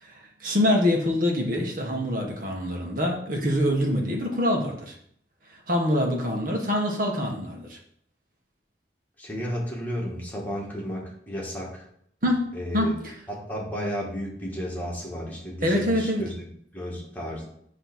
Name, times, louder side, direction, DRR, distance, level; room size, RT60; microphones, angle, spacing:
voice 1, 0.0-5.0 5.5-7.8 12.2-13.1 15.6-16.3, left 1 dB, 50° right, 0 dB, 1.5 m, -25 dB
voice 2, 9.2-11.8 12.5-12.9 13.3-16.3 16.7-17.5, equal, 10° left, -3 dB, 1.7 m, -33 dB
7.9 x 3.3 x 6.1 m, 0.67 s
head